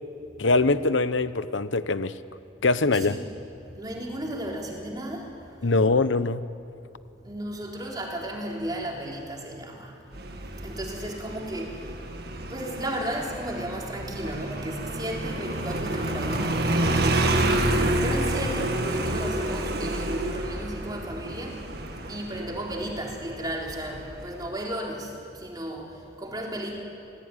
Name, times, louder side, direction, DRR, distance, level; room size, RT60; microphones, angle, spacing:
voice 1, 0.4-2.1 2.6-3.2 5.6-6.4, left 3 dB, 80° left, 13 dB, 1.0 m, -22 dB
voice 2, 3.7-5.7 7.2-10.0 10.6-11.9 12.2-21.6 22.1-26.8, right 1 dB, 20° right, -1 dB, 3.7 m, -34 dB
Motorcycle, 10.1-24.4, right 1 dB, 55° right, 1.9 m, -29 dB
26.0 x 18.0 x 9.9 m, 2.6 s
head